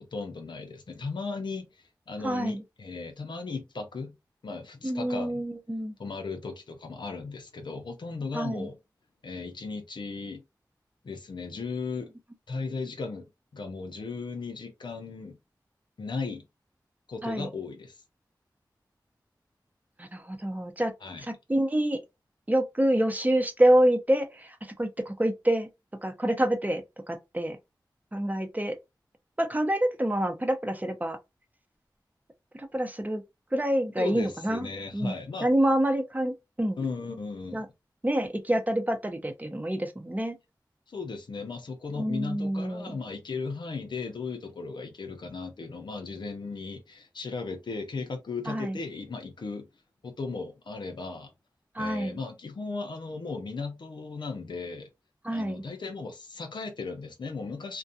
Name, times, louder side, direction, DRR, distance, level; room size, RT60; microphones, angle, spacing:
voice 1, 0.0-1.7 2.1-4.2 4.4-5.4 6.0-8.8 9.2-10.4 11.0-12.1 12.5-15.4 16.0-16.4 17.1-18.0 21.0-21.3 34.0-35.5 36.8-37.6 40.9-49.7 50.0-51.3 51.8-54.9 55.3-57.8, left 4 dB, 80° left, 0.6 m, -36 dB
voice 2, 2.2-2.6 4.8-5.9 8.3-8.7 17.2-17.5 20.0-20.9 21.3-22.0 22.5-25.7 26.0-27.6 28.1-28.8 29.4-31.2 32.6-33.2 33.5-35.1 35.4-36.8 37.5-37.7 38.0-40.4 41.9-43.0 48.5-48.8 51.8-52.2 55.2-55.6, right 1 dB, 20° right, 0.6 m, -27 dB
2.4 x 2.2 x 2.6 m
cardioid pair, 40°, 8 cm